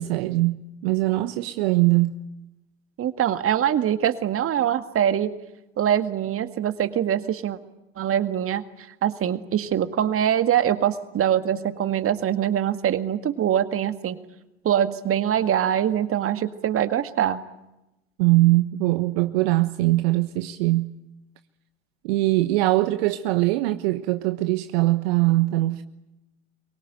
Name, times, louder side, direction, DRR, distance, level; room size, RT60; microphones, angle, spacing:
voice 1, 0.0-2.2 18.2-20.9 22.0-25.8, right 19 dB, 65° right, 1.1 m, -22 dB
voice 2, 3.0-5.3 5.8-7.6 8.0-8.6 9.0-14.2 14.6-17.4, right 10 dB, 45° right, 2.0 m, -23 dB
24.5 x 23.5 x 9.2 m
figure-of-eight pair, 60°, 32 cm